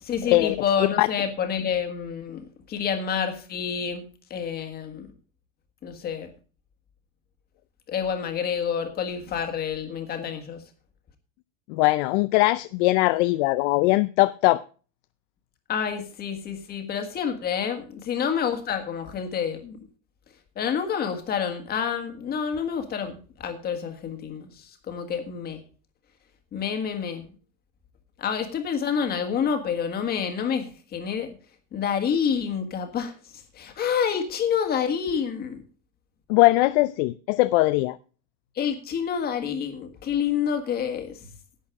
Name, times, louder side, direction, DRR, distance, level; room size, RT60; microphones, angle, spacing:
voice 1, 0.0-4.0 4.3-5.1 5.8-6.3 7.9-10.6 15.7-19.8 20.6-24.5 24.9-25.6 26.5-27.3 28.2-30.7 30.9-31.3 31.7-33.1 33.5-35.6 38.6-41.1, left 7 dB, 25° left, 1.7 m, -28 dB
voice 2, 11.7-14.6 36.3-38.0, left 20 dB, 75° left, 0.5 m, -20 dB
11.5 x 8.6 x 4.8 m
cardioid pair, 175°, 34 cm